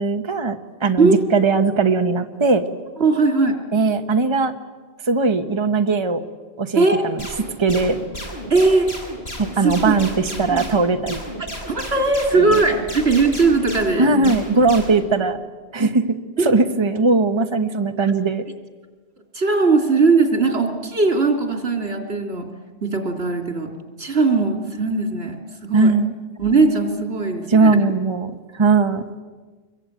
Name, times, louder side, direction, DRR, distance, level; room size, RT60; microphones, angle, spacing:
voice 1, 0.0-2.6 3.7-4.5 5.1-6.2 6.6-7.3 7.6-8.0 9.4-11.2 12.3-12.6 14.0-15.4 15.7-18.4 25.7-26.1 27.5-29.0, right 3 dB, 30° right, 6 dB, 1.1 m, -19 dB
voice 2, 3.0-3.6 6.8-7.0 8.5-8.9 9.6-10.0 10.5-10.7 11.4-14.3 19.4-22.5 22.8-23.7 24.0-25.4 25.6-25.9 26.4-27.8, right 3 dB, 90° right, 3 dB, 3.5 m, -19 dB
sound 1, 7.2-15.0, equal, 80° left, 8.4 m, -33 dB
26.0 x 22.5 x 9.3 m, 1.4 s
omnidirectional pair, 1.0 m